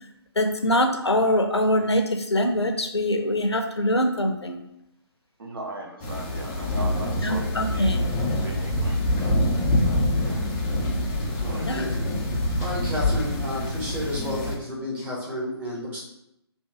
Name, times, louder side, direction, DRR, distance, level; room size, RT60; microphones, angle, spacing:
voice 1, 0.4-4.6 7.2-8.1 11.6-11.9, left 1 dB, 75° left, 5 dB, 0.7 m, -23 dB
voice 2, 5.4-8.0 8.4-10.4 11.4-11.7, right 2 dB, 55° right, 0 dB, 1.1 m, -39 dB
sound 1, 6.0-14.6, left 1 dB, 15° left, 0.5 m, -25 dB
voice 3, 11.4-16.0, left 1 dB, 10° right, -7 dB, 1.0 m, -32 dB
3.6 x 2.7 x 4.6 m, 0.80 s
figure-of-eight pair, 140°, 14 cm